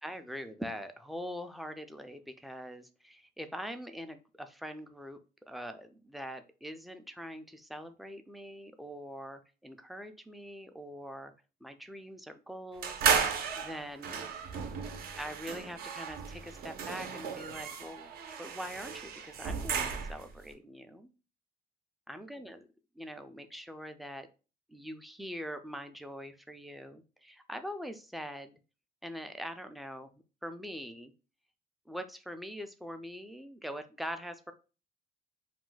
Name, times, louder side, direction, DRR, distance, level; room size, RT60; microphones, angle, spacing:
voice 1, 0.0-5.2 5.5-11.3 11.6-13.0 13.6-14.3 15.2-18.1 18.4-21.1 22.1-22.7 23.0-24.3 24.7-28.6 29.0-30.1 30.4-31.1 31.9-34.5, equal, ahead, 7 dB, 0.3 m, -43 dB
sound 1, 12.8-20.3, right 6 dB, 65° right, 0.6 m, -34 dB
2.4 x 2.1 x 3.8 m, 0.33 s
cardioid pair, 110°, 17 cm